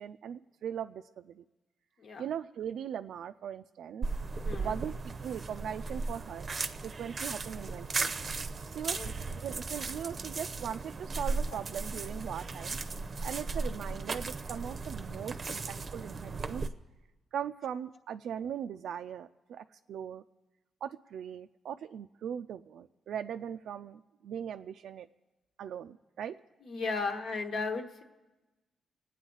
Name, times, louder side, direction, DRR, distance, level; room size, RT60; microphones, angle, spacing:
voice 1, 0.0-1.4 2.2-4.1 4.6-6.5 6.8-8.1 8.7-9.1 9.4-12.8 13.2-16.6 17.3-20.2 20.8-25.1 25.6-26.4, right 9 dB, 80° right, 7 dB, 0.4 m, -39 dB
sound 1, 4.0-16.7, right 3 dB, 40° right, 0.6 m, -36 dB
voice 2, 4.4-4.8 8.9-9.1 26.6-28.0, left 4 dB, 65° left, 4 dB, 1.2 m, -35 dB
25.5 x 9.0 x 3.9 m, 1.1 s
cardioid pair, 110°, 0 cm